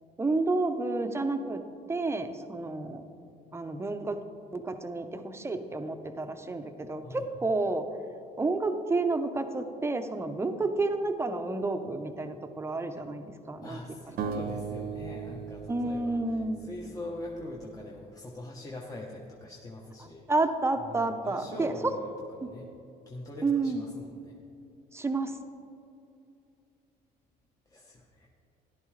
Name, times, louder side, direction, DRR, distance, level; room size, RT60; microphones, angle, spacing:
voice 1, 0.2-1.6 1.9-3.0 3.5-4.2 4.5-7.9 8.4-13.8 15.7-16.6 20.3-21.9 23.4-23.8 24.9-25.4, right 3 dB, 15° right, 7 dB, 0.7 m, -30 dB
voice 2, 13.6-16.2 16.6-20.2 20.9-22.1 22.4-22.7 23.1-24.4 27.7-28.3, left 1 dB, 20° left, -2 dB, 0.9 m, -42 dB
sound 1, 14.2-17.3, right 6 dB, 70° right, 0.9 m, -38 dB
13.5 x 11.0 x 3.2 m, 2.7 s
cardioid pair, 110°, 17 cm